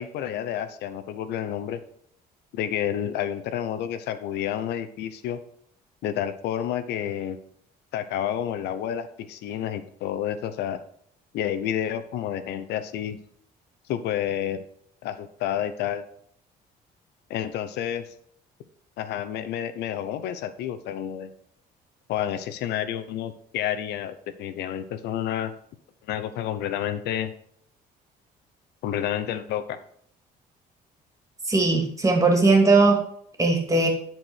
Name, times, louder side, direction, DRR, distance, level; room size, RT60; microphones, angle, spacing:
voice 1, 0.0-1.8 2.5-5.4 6.0-7.4 7.9-10.8 11.3-13.2 13.9-14.6 15.0-16.0 17.3-18.1 19.0-21.3 22.1-25.5 26.1-27.3 28.8-29.8, left 10 dB, 80° left, 12 dB, 0.8 m, -30 dB
voice 2, 31.5-33.0 33.4-33.9, right 3 dB, 20° right, 2 dB, 2.7 m, -19 dB
11.0 x 4.5 x 6.3 m, 0.64 s
cardioid pair, 110°, 17 cm